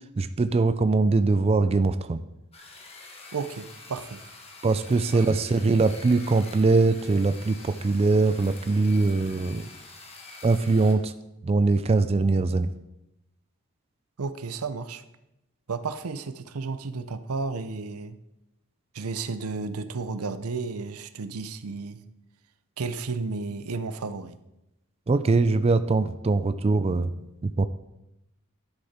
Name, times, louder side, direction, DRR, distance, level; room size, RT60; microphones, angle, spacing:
voice 1, 0.2-2.2 4.6-9.7 10.4-11.1 11.4-12.7 25.1-27.1 27.4-27.7, right 3 dB, 25° right, 12 dB, 0.3 m, -22 dB
sound 1, 2.5-10.9, left 3 dB, 30° left, 1.3 m, -46 dB
voice 2, 3.3-4.2 5.1-5.4 14.2-15.0 15.7-18.2 18.9-22.0 22.8-24.4, right 4 dB, 90° right, 12 dB, 0.6 m, -33 dB
11.5 x 6.6 x 4.3 m, 0.89 s
head